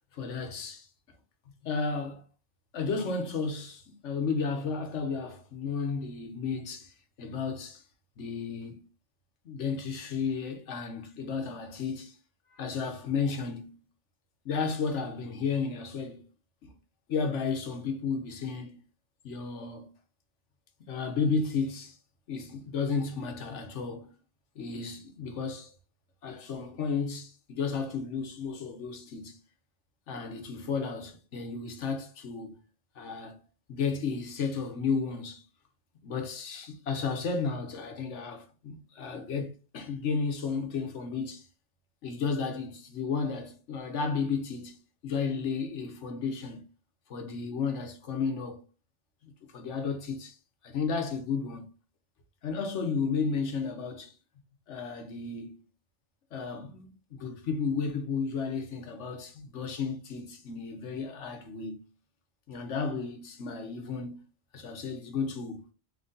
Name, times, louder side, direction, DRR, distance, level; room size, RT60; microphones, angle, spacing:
voice 1, 0.1-0.9 1.6-2.2 2.7-6.9 7.2-7.8 8.2-8.8 9.4-12.2 12.5-13.9 14.4-16.2 16.6-16.7 17.1-18.8 19.2-19.9 20.8-22.0 22.3-24.1 24.5-25.7 26.2-29.4 30.1-32.6 33.0-33.4 33.7-35.4 36.0-41.5 42.0-46.6 47.1-48.6 49.2-50.4 50.6-51.7 52.4-54.1 54.7-55.5 56.3-61.9 62.5-65.6, left 5 dB, 80° left, 1.2 m, -33 dB
4.0 x 2.9 x 3.8 m
omnidirectional pair, 1.2 m